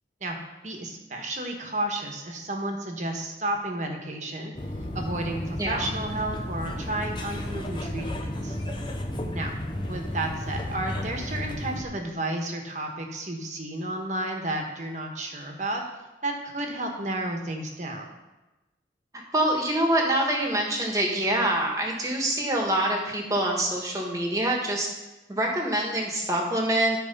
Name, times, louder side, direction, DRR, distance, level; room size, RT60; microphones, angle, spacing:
voice 1, 0.6-4.5 4.9-8.5 9.3-9.5 9.9-15.8 16.2-18.1, right 1 dB, 40° right, 2 dB, 1.3 m, -32 dB
sound 1, 4.5-11.8, left 1 dB, 25° left, 0.8 m, -33 dB
voice 2, 19.3-24.9 25.3-27.0, right 1 dB, 20° right, 0 dB, 1.5 m, -25 dB
12.0 x 4.7 x 5.4 m, 1.1 s
head